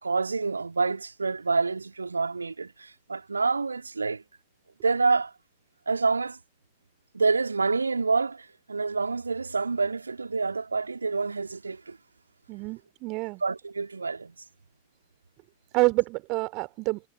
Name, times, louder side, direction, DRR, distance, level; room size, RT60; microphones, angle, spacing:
voice 1, 0.0-4.2 4.8-5.3 5.9-6.4 7.1-12.0 13.4-14.4, right 4 dB, 80° right, 2.4 m, -27 dB
voice 2, 12.5-13.4 15.7-17.0, right 25 dB, 40° right, 3.3 m, -27 dB
figure-of-eight pair, 90°, 0 cm